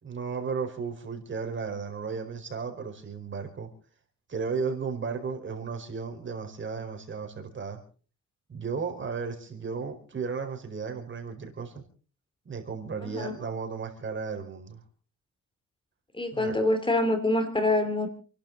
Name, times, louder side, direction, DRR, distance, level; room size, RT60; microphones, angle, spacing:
voice 1, 0.0-3.7 4.3-7.8 8.5-11.8 12.4-14.8 16.3-16.6, right 5 dB, 40° right, 4 dB, 4.6 m, -34 dB
voice 2, 13.0-13.3 16.1-18.1, left 2 dB, 15° left, 7 dB, 2.6 m, -25 dB
29.0 x 12.0 x 4.0 m, 0.40 s
cardioid pair, 90°, 30 cm